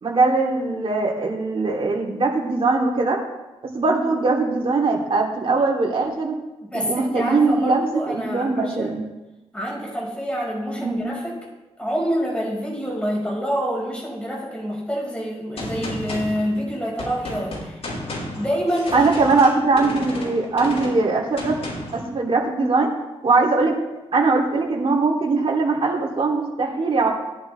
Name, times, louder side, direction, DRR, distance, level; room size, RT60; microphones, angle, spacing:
voice 1, 0.0-3.2 3.7-6.4 6.7-9.0 10.8-11.1 18.9-21.6 21.9-22.9 23.2-23.7 24.1-27.1, right 3 dB, 55° right, -2 dB, 3.3 m, -21 dB
voice 2, 6.6-9.0 9.5-11.4 11.8-17.8 18.3-19.1, equal, 10° left, -4 dB, 5.7 m, -27 dB
Gunshot gunfire, 15.6-22.1, left 1 dB, 65° left, 4.8 m, -33 dB
19.0 x 10.5 x 3.5 m, 1.0 s
cardioid pair, 95°, 11 cm